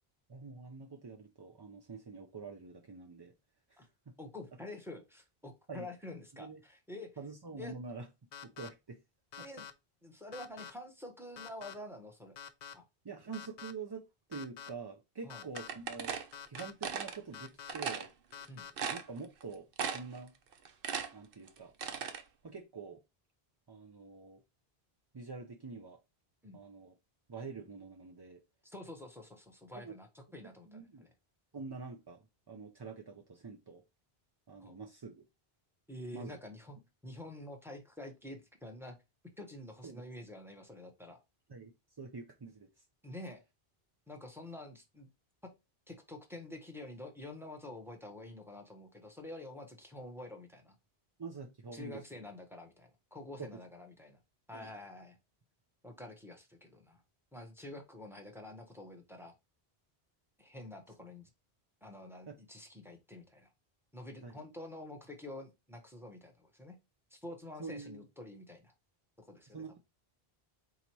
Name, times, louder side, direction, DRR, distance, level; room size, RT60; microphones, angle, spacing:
voice 1, 0.3-3.3 3.7-3.8 5.7-5.9 6.3-6.6 7.2-8.1 8.4-9.0 9.4-9.5 13.0-16.2 16.5-18.1 18.9-20.3 21.1-21.7 22.4-23.0 23.7-24.4 25.1-26.0 26.5-26.9 27.3-28.4 29.7-30.0 30.7-31.1 31.5-33.8 34.5-35.2 36.1-36.4 39.8-40.0 41.5-41.7 42.0-42.7 51.2-52.2 53.4-53.5 54.5-54.7 62.3-62.4 64.2-64.4 67.6-68.0 69.5-69.8, right 4 dB, 35° right, 3 dB, 0.4 m, -46 dB
voice 2, 4.2-7.2 7.6-7.7 9.4-9.6 10.0-12.4 12.7-12.9 15.2-15.4 18.5-18.6 26.4-26.6 28.6-31.1 34.6-34.8 35.9-39.0 39.2-41.2 43.0-43.4 44.1-45.1 45.4-45.5 45.9-50.8 51.7-54.2 54.5-55.2 55.8-57.0 57.3-59.3 60.4-61.3 61.8-63.5 63.9-66.8 67.1-68.7 69.2-69.6, left 1 dB, 5° right, 4 dB, 0.9 m, -48 dB
sound 1, 8.3-8.7 9.3-9.7 10.3-10.7 11.4-11.7 12.4-12.7 13.3-13.7 14.3-14.7 15.3-15.7 16.3-16.7 17.3-17.7 18.3-18.7, left 8 dB, 50° left, 0.6 m, -47 dB
sound 2, 15.6-17.2 17.7-18.1 18.4-18.5 18.8-19.4 19.8-20.2 20.5-22.2, right 6 dB, 65° right, 0.8 m, -37 dB
4.1 x 2.9 x 4.5 m, 0.23 s
omnidirectional pair, 1.0 m